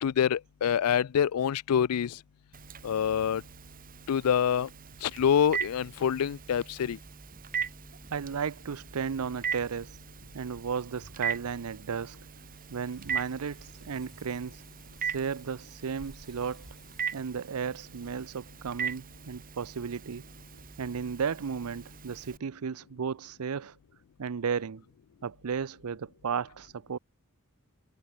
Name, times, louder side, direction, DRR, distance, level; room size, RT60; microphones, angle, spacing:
voice 1, 0.0-2.2 2.8-3.4 4.1-4.7 5.0-7.0, left 8 dB, 85° left, 0.4 m, -26 dB
Telephone, 2.5-22.4, right 7 dB, 40° right, 1.9 m, -40 dB
voice 2, 8.1-10.0 10.3-12.2 12.7-14.6 15.0-16.7 17.1-20.2 20.8-23.8 24.2-24.8 25.2-27.0, right 6 dB, 80° right, 0.5 m, -34 dB
sound 1, 12.3-18.4, equal, ahead, 3.7 m, -65 dB
head